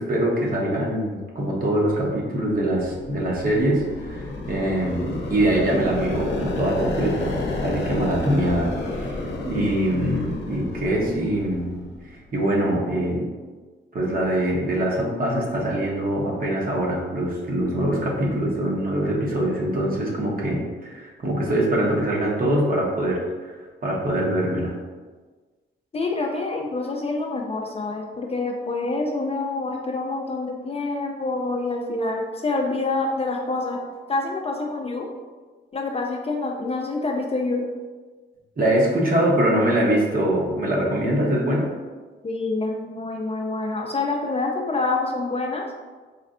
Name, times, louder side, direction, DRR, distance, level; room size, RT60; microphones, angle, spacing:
voice 1, 0.0-9.2 9.4-11.8 12.1-13.3 13.9-23.5 23.8-24.7 38.6-41.7, right 1 dB, 45° right, -3 dB, 1.0 m, -23 dB
sound 1, 2.5-12.3, left 2 dB, 60° left, 0.7 m, -31 dB
voice 2, 25.9-33.8 34.1-35.1 35.7-37.7 42.2-45.7, left 3 dB, 30° left, 1 dB, 0.4 m, -26 dB
4.3 x 3.1 x 2.5 m, 1.4 s
cardioid pair, 100°, 21 cm